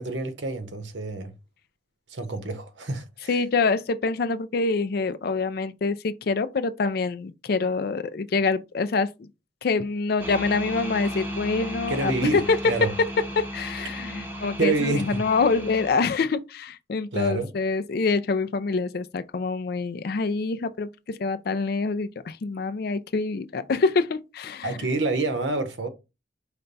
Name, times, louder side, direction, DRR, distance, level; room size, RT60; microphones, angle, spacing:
voice 1, 0.0-1.3 2.1-3.3 11.9-12.9 14.6-15.2 17.1-17.5 24.6-25.9, right 2 dB, 85° right, 1.0 m, -27 dB
voice 2, 3.3-9.3 9.6-12.6 13.4-24.7, left 4 dB, 55° left, 0.4 m, -26 dB
sound 1, 10.2-15.9, equal, 10° right, 0.8 m, -35 dB
5.0 x 2.2 x 4.0 m
head